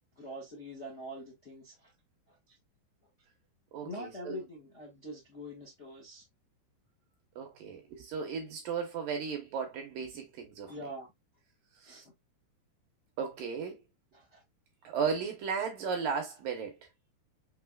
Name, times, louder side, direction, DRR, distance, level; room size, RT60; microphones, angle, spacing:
voice 1, 0.1-1.9 2.5-2.6 3.8-6.2 10.7-11.1 11.8-12.1 14.1-14.4, equal, 60° left, 0.7 m, -44 dB
voice 2, 3.7-4.4 7.4-10.7 11.8-12.0 13.2-13.8 14.8-16.8, right 6 dB, 70° right, 2.3 m, -35 dB
6.2 x 3.7 x 2.3 m
omnidirectional pair, 4.9 m